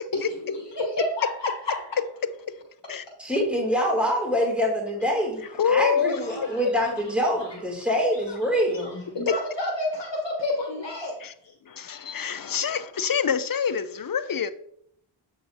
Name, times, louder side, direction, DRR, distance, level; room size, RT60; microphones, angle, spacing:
voice 1, 0.5-2.0 6.2-6.9 7.4-7.6 8.3-8.4 8.7-11.2 12.4-12.6, left 2 dB, 60° left, 0 dB, 1.2 m, -30 dB
voice 2, 3.2-9.0, equal, ahead, -2 dB, 2.6 m, -25 dB
voice 3, 5.6-6.2 11.2-11.3 11.7-14.5, left 7 dB, 45° left, 13 dB, 0.5 m, -26 dB
7.8 x 5.1 x 2.7 m, 0.70 s
cardioid pair, 45°, 48 cm